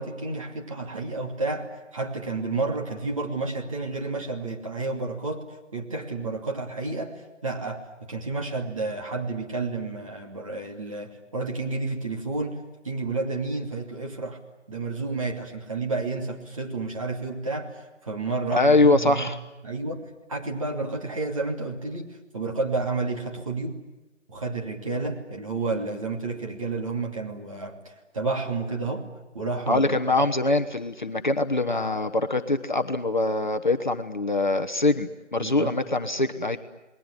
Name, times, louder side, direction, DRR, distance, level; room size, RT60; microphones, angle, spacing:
voice 1, 0.0-14.4 14.7-19.3 19.6-23.8 24.3-29.0 29.3-30.3 35.4-35.7, right 3 dB, 25° right, 1 dB, 2.8 m, -31 dB
voice 2, 18.5-19.4 29.7-36.6, left 2 dB, 40° left, 7 dB, 1.1 m, -23 dB
29.0 x 20.5 x 9.8 m, 1.1 s
figure-of-eight pair, 160°, 37 cm